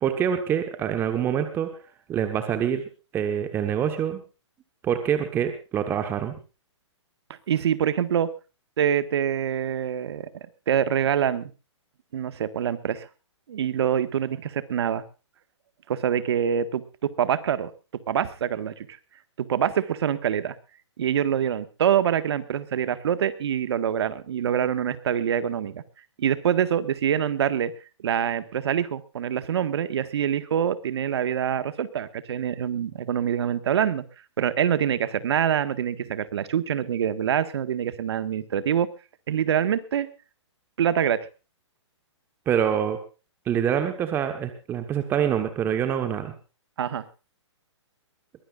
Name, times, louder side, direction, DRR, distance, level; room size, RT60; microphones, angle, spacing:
voice 1, 0.0-1.7 2.1-2.8 3.1-4.2 4.8-6.3 42.5-43.0 43.5-46.3, right 9 dB, 15° right, 8 dB, 1.3 m, -25 dB
voice 2, 7.5-8.3 8.8-11.5 12.1-13.1 13.5-15.0 15.9-17.7 18.1-18.9 19.4-20.5 21.0-25.8 26.2-27.7 28.0-34.0 34.4-38.9 39.3-40.1 40.8-41.2 46.8-47.0, right 9 dB, 60° right, 13 dB, 1.7 m, -25 dB
22.5 x 16.5 x 2.5 m, 0.32 s
hypercardioid pair, 160°, 16 cm